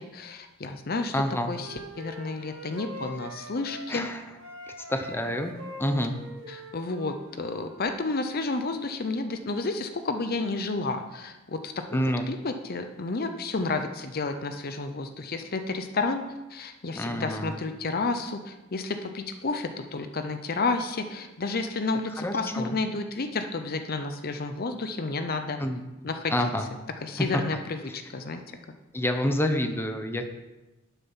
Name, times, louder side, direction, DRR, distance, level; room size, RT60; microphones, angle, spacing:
voice 1, 0.0-4.1 6.5-16.2 16.5-25.6 26.0-26.5 27.0-28.4, left 3 dB, 50° left, 7 dB, 0.7 m, -31 dB
voice 2, 1.1-1.5 3.9-4.2 4.9-5.5 5.8-6.1 11.9-12.3 16.9-17.5 22.2-22.8 25.6-25.8 26.3-26.7 27.2-27.3 28.9-30.2, left 1 dB, 10° left, 6 dB, 0.9 m, -28 dB
Wind instrument woodwind instrument, 1.2-4.1 4.4-7.9, equal, 70° right, 2.5 m, -43 dB
11.5 x 7.1 x 5.7 m, 1.0 s
head